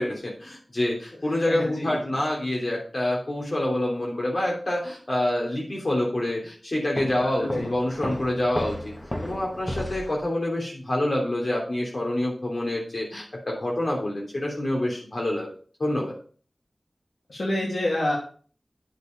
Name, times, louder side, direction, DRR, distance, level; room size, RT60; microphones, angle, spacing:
voice 1, 0.0-8.9 9.2-15.5 15.8-16.1, left 1 dB, 55° left, -2 dB, 3.2 m, -27 dB
voice 2, 1.3-2.0 7.4-7.7 17.3-18.1, left 1 dB, 85° left, -4 dB, 3.0 m, -27 dB
Walk footsteps, 7.0-10.3, left 1 dB, 25° left, 1.6 m, -34 dB
10.5 x 6.7 x 5.3 m, 0.43 s
wide cardioid pair, 60°, 0 cm